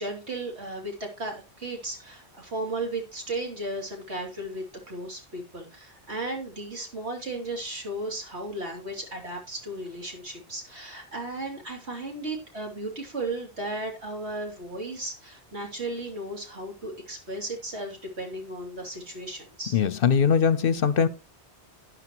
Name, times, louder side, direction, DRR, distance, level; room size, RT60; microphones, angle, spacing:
voice 1, 0.0-19.8, right 2 dB, 70° right, 3.4 m, -35 dB
voice 2, 19.7-21.1, left 7 dB, 60° left, 0.8 m, -21 dB
12.0 x 9.9 x 3.0 m
omnidirectional pair, 1.1 m